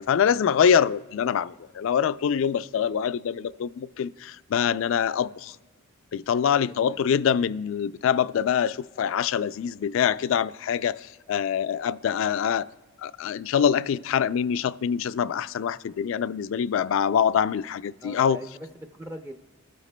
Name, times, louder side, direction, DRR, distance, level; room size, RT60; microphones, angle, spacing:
voice 1, 0.0-5.6 6.1-12.7 13.0-18.4, left 8 dB, 60° left, 0.3 m, -24 dB
voice 2, 6.7-7.0 18.0-19.4, left 1 dB, 10° right, 0.4 m, -41 dB
26.5 x 13.0 x 2.2 m
head